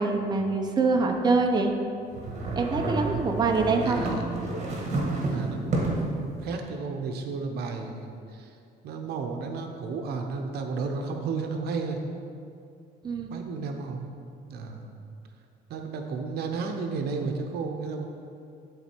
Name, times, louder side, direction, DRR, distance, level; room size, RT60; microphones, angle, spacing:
voice 1, 0.0-1.7 2.5-4.0 13.0-13.3, right 4 dB, 25° right, 3 dB, 0.7 m, -24 dB
sound 1, 2.1-6.2, right 2 dB, 45° right, 1.6 m, -30 dB
voice 2, 3.8-4.3 5.3-8.5 8.8-12.0 13.3-14.1 14.5-14.9 15.7-18.1, right 4 dB, 70° right, 4 dB, 0.8 m, -33 dB
11.5 x 3.9 x 4.5 m, 2.4 s
cardioid pair, 110°, 17 cm